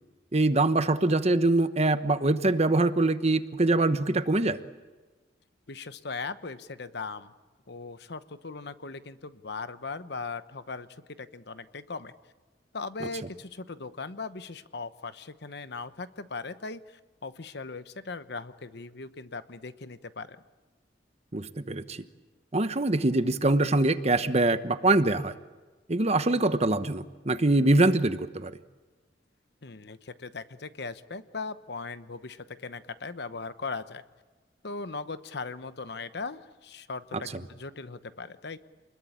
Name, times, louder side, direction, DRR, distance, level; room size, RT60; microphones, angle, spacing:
voice 1, 0.3-4.6 21.3-22.0 22.5-25.3 25.9-28.5 37.1-37.2, right 2 dB, 35° right, 11 dB, 1.1 m, -24 dB
voice 2, 5.7-7.3 7.7-10.9 11.2-12.1 12.7-20.4 29.6-34.0 34.6-38.6, left 4 dB, 65° left, 12 dB, 1.0 m, -39 dB
28.5 x 21.0 x 8.7 m, 1.2 s
head